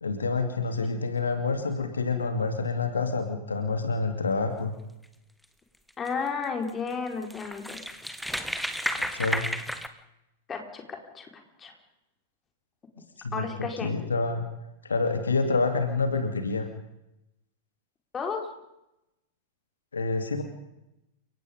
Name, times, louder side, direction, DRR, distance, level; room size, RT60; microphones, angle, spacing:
voice 1, 0.0-4.7 9.0-9.5 13.2-14.4 14.9-16.6 19.9-20.4, left 4 dB, 75° left, 6 dB, 2.7 m, -27 dB
sound 1, 5.9-6.1 6.7-6.8 7.1-9.9, equal, ahead, 1.5 m, -32 dB
voice 2, 6.0-7.8 10.5-11.3 11.6-11.7 13.3-13.9 18.1-18.4, left 5 dB, 20° left, 3 dB, 4.6 m, -32 dB
30.0 x 17.5 x 5.4 m, 0.88 s
figure-of-eight pair, 95°, 0 cm